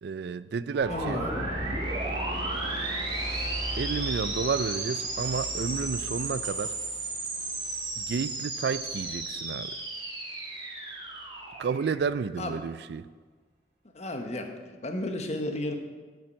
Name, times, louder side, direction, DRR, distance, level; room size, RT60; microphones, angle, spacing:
voice 1, 0.0-1.2 3.8-6.7 8.0-9.7 11.6-13.1, right 5 dB, 65° right, 16 dB, 0.4 m, -31 dB
sound 1, 0.7-12.4, right 2 dB, 25° right, 2.0 m, -34 dB
sound 2, 0.8-9.3, equal, 40° right, 2.6 m, -39 dB
voice 2, 0.9-1.5 12.4-12.6 13.9-14.5 14.8-15.8, left 1 dB, 40° left, 5 dB, 1.1 m, -33 dB
10.5 x 7.2 x 6.3 m, 1.4 s
head